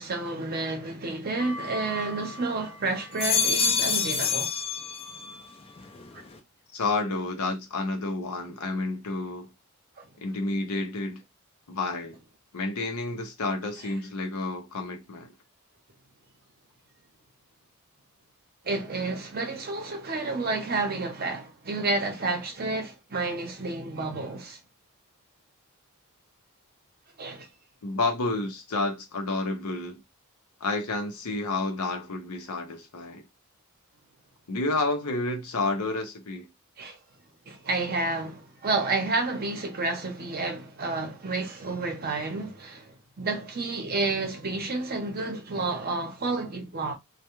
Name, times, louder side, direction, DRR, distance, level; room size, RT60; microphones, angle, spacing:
voice 1, 0.0-4.5 6.1-6.2 10.0-10.1 18.6-24.6 27.2-27.5 36.8-37.0 37.5-46.9, right 3 dB, 45° right, 0.7 m, -30 dB
sound 1, 1.4-2.5 3.0-5.4 5.8-6.4, left 5 dB, 25° left, 0.4 m, -28 dB
voice 2, 6.7-9.5 10.2-11.2 11.7-12.2 12.5-15.3 27.8-30.0 30.6-33.2 34.5-36.5, left 2 dB, 80° left, 0.6 m, -30 dB
2.2 x 2.2 x 2.9 m
head